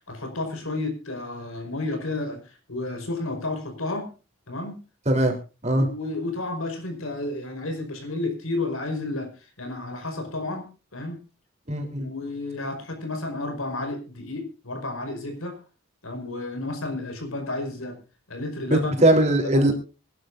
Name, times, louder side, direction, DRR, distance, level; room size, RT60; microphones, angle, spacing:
voice 1, 0.0-4.1 4.5-4.8 5.8-9.3 9.6-11.2 12.0-15.6 16.0-18.0 18.3-19.0 19.3-19.7, left 2 dB, 85° left, 6 dB, 5.2 m, -31 dB
voice 2, 11.7-12.1 18.7-19.7, right 1 dB, 30° right, 3 dB, 3.6 m, -20 dB
25.5 x 11.5 x 2.6 m, 0.32 s
head